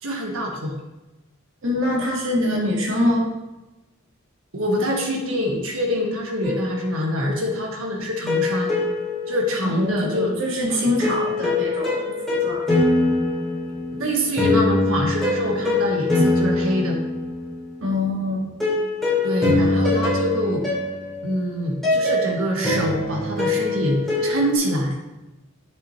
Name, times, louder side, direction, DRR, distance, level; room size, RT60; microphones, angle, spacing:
voice 1, 0.0-0.8 4.5-8.8 9.3-10.4 10.7-10.9 13.9-17.0 19.2-20.6 21.2-25.0, equal, 80° right, 0 dB, 1.6 m, -25 dB
voice 2, 1.6-3.3 9.6-12.7 17.8-18.5, left 1 dB, 60° right, -3 dB, 2.0 m, -24 dB
sound 1, 6.4-7.5 8.3-10.1 11.0-17.7 18.6-24.6, left 2 dB, ahead, 2.7 m, -23 dB
8.1 x 7.4 x 3.2 m, 1.0 s
head